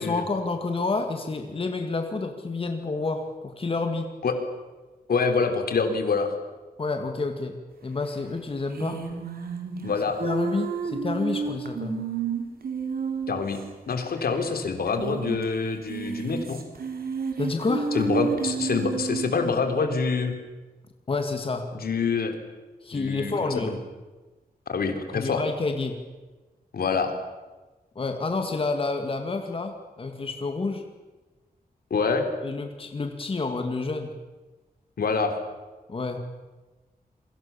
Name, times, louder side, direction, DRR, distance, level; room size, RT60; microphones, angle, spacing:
voice 1, 0.0-4.1 6.8-7.5 7.8-9.0 10.2-12.0 17.4-17.9 21.1-21.7 22.8-23.8 25.1-26.0 28.0-30.8 32.4-34.1 35.9-36.2, left 3 dB, 35° left, 5 dB, 2.1 m, -29 dB
voice 2, 5.1-6.3 9.8-10.2 13.3-16.6 17.9-20.3 21.7-22.3 22.9-23.8 24.7-25.4 26.7-27.1 31.9-32.3 35.0-35.3, left 5 dB, 75° left, 6 dB, 3.6 m, -26 dB
sound 1, 8.7-13.6 13.9-14.0 14.2-14.3 14.9-15.4 15.8-19.4, right 5 dB, 75° right, 3.9 m, -30 dB
28.0 x 24.0 x 7.1 m, 1.2 s
wide cardioid pair, 175°, 16 cm